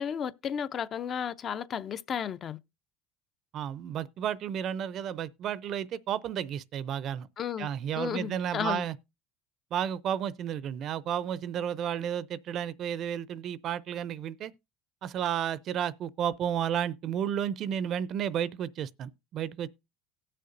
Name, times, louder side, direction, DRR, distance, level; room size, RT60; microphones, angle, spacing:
voice 1, 0.0-2.6 7.4-7.7 8.0-8.8, left 8 dB, 40° left, 0.6 m, -33 dB
voice 2, 3.5-7.3 7.6-8.9 9.7-14.5 15.0-19.7, right 9 dB, 50° right, 0.5 m, -32 dB
18.5 x 6.6 x 2.6 m
supercardioid pair, 110°, 0 cm